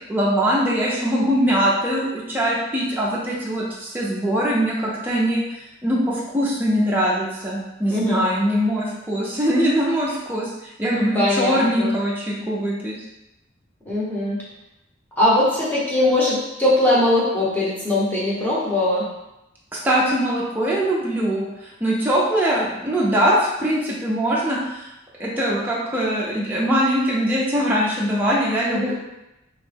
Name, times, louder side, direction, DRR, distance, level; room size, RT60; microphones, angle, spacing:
voice 1, 0.1-12.9 19.7-24.9 25.2-28.9, equal, 10° right, -6 dB, 0.4 m, -22 dB
voice 2, 7.9-8.2 11.1-11.9 13.9-14.4 15.2-19.1 28.7-28.9, left 1 dB, 10° left, -7 dB, 0.8 m, -20 dB
2.9 x 2.1 x 3.2 m, 0.93 s
head